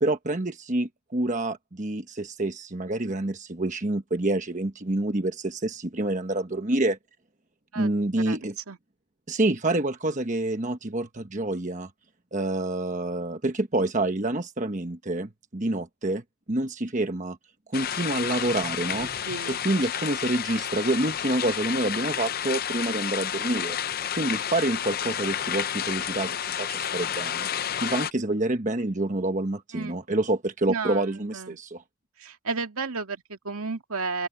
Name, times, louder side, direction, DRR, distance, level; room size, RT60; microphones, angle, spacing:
voice 1, 0.0-7.0 7.7-8.5 9.3-11.9 12.3-16.2 16.5-17.4 17.7-23.8 24.2-27.5 27.8-31.8, right 2 dB, 35° right, 1.2 m, -27 dB
sound 1, 17.7-28.1, left 9 dB, 45° left, 0.5 m, -30 dB
voice 2, 19.0-19.6 29.7-30.0 30.7-31.6 32.2-34.3, right 4 dB, 80° right, 2.2 m, -33 dB
open air
head